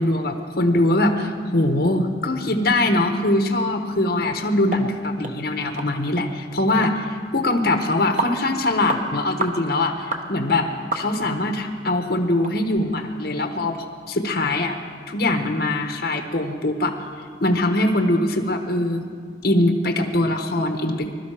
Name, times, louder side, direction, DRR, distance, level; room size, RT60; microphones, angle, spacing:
voice 1, 0.0-13.8 14.1-14.8 15.1-17.0 17.4-19.1 19.4-21.0, left 1 dB, 60° left, 5 dB, 1.2 m, -22 dB
sound 1, 4.7-4.9 5.2-5.4 5.8-5.9 6.2-6.3 6.8-7.0 7.5-7.6 8.2-8.4 8.9-9.0 9.4-9.6 10.1-10.3 10.9-11.4 11.8-11.9 12.4-12.5 13.0-13.1, right 3 dB, 45° right, 1.1 m, -28 dB
21.0 x 12.5 x 5.0 m, 2.1 s
head